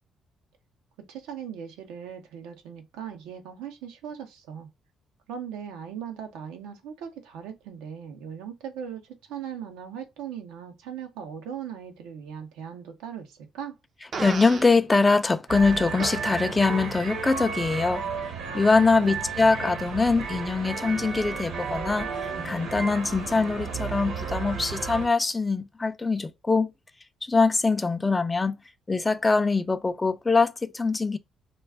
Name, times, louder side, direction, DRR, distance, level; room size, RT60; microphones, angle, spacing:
voice 1, 1.1-4.7 5.3-13.8 18.8-19.5, right 8 dB, 90° right, 0.7 m, -39 dB
Fart, 14.1-14.7 16.0-16.2, right 5 dB, 50° right, 0.5 m, -33 dB
voice 2, 14.2-18.0 18.5-22.1 22.4-26.7 27.2-28.6 28.9-31.2, left 3 dB, 20° left, 0.4 m, -23 dB
sound 1, 15.5-25.1, right 5 dB, 75° right, 1.1 m, -33 dB
2.3 x 2.3 x 3.4 m
supercardioid pair, 70°, 0 cm